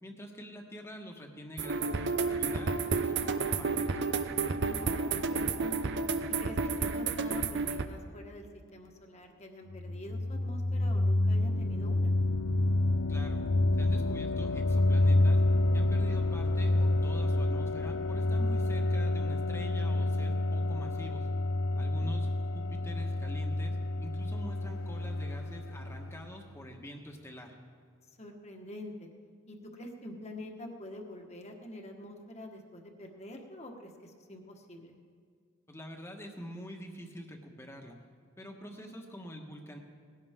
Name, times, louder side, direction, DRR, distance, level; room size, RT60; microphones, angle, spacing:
voice 1, 0.0-3.9 13.1-13.4 13.8-15.4 15.7-21.3 21.8-27.6 35.7-38.0 38.4-39.8, equal, 10° left, 2 dB, 1.4 m, -46 dB
sound 1, 1.6-7.8, right 4 dB, 55° right, 0.7 m, -31 dB
voice 2, 4.6-5.9 6.4-12.1 21.7-22.3 28.2-29.1 29.5-34.9, left 1 dB, 30° left, 2 dB, 1.5 m, -46 dB
sound 2, 9.7-26.4, left 2 dB, 65° left, 0.6 m, -28 dB
20.0 x 16.5 x 3.7 m, 2.1 s
head